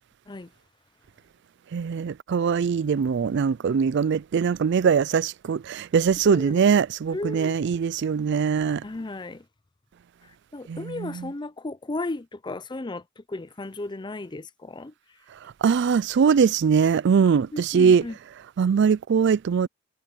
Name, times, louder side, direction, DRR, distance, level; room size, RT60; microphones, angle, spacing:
voice 1, 1.7-8.8 10.7-11.3 15.6-18.1 18.6-19.7, right 6 dB, 55° right, 0.3 m, -22 dB
voice 2, 6.3-6.6 7.1-7.6 8.8-9.4 10.5-14.9 17.5-18.2, left 2 dB, 20° left, 0.5 m, -35 dB
head